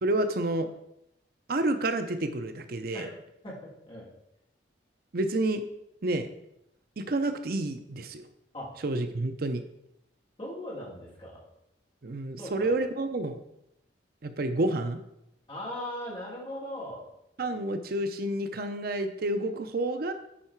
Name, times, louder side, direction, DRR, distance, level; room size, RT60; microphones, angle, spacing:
voice 1, 0.0-0.7 1.5-3.1 5.1-5.6 6.0-6.3 7.0-8.2 8.8-9.6 12.0-13.4 14.2-15.0 17.4-20.1, right 2 dB, 55° right, 8 dB, 0.6 m, -29 dB
voice 2, 3.4-4.1 8.5-8.7 10.4-11.4 12.4-12.7 15.5-17.0, left 1 dB, 30° left, -4 dB, 2.7 m, -39 dB
10.0 x 4.7 x 4.5 m, 0.81 s
head